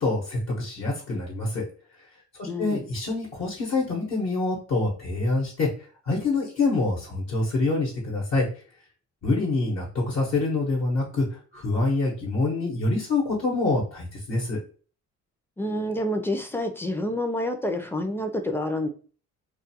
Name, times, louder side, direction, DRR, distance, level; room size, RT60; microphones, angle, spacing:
voice 1, 0.0-1.6 2.4-5.7 6.1-8.4 9.2-11.2 11.5-14.6, left 3 dB, 60° left, -3 dB, 1.0 m, -26 dB
voice 2, 2.5-2.9 15.6-18.9, left 1 dB, 10° left, 5 dB, 0.4 m, -28 dB
2.3 x 2.2 x 2.8 m, 0.40 s
cardioid pair, 90°, 30 cm